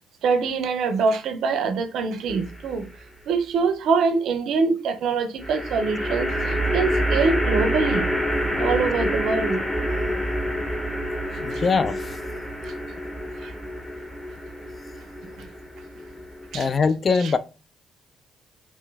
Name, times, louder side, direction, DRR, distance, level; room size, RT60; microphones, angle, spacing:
voice 1, 0.2-2.8 3.3-8.1 8.6-9.6 11.5-11.6 13.4-13.5 15.2-15.5 16.5-16.7 17.2-17.3, right 5 dB, 70° right, 0.5 m, -24 dB
sound 1, 2.3-2.9 5.4-16.8, equal, 15° left, 1.5 m, -27 dB
voice 2, 11.4-12.2 16.5-17.4, left 5 dB, 45° left, 0.3 m, -22 dB
3.1 x 3.0 x 2.3 m
hypercardioid pair, 55°, 0 cm